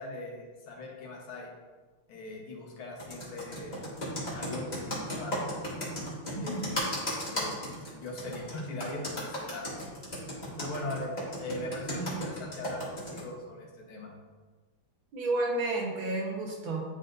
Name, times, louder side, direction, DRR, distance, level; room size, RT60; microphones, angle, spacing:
voice 1, 0.0-1.5 2.1-3.9 4.3-5.3 6.4-7.5 7.9-9.7 10.6-14.1, left 2 dB, 75° left, -2 dB, 2.0 m, -40 dB
Computer keyboard, 3.0-13.2, equal, 20° left, 1.7 m, -35 dB
voice 2, 6.3-6.7 15.1-16.8, right 2 dB, 70° right, -2 dB, 1.8 m, -31 dB
10.5 x 4.1 x 2.6 m, 1.4 s
omnidirectional pair, 2.3 m